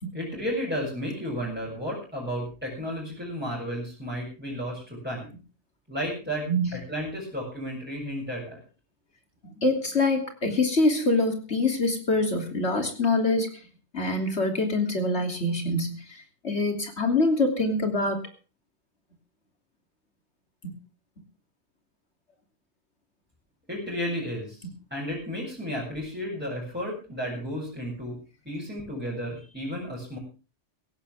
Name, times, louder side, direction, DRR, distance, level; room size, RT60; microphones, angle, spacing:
voice 1, 0.1-5.3 5.9-6.5 6.7-8.6 23.7-28.2 28.5-30.2, equal, 10° right, -5 dB, 7.3 m, -33 dB
voice 2, 9.6-13.5 13.9-18.3 20.6-20.8, left 2 dB, 65° left, 5 dB, 3.5 m, -25 dB
17.0 x 17.0 x 3.5 m, 0.34 s
omnidirectional pair, 1.2 m